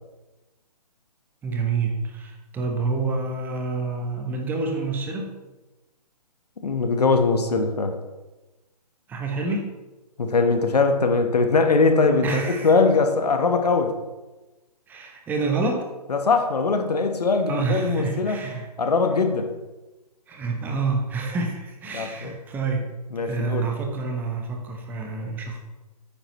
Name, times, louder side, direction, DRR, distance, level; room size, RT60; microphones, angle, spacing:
voice 1, 1.4-5.3 9.1-9.7 12.2-12.7 14.9-15.9 17.5-18.7 20.3-22.8 23.2-25.6, right 4 dB, 10° right, 2 dB, 0.9 m, -28 dB
voice 2, 6.6-8.0 10.2-13.9 16.1-18.4 18.8-19.5 21.9-22.3 23.1-23.7, left 4 dB, 70° left, 6 dB, 1.2 m, -21 dB
9.0 x 8.9 x 3.1 m, 1.1 s
figure-of-eight pair, 140°, 21 cm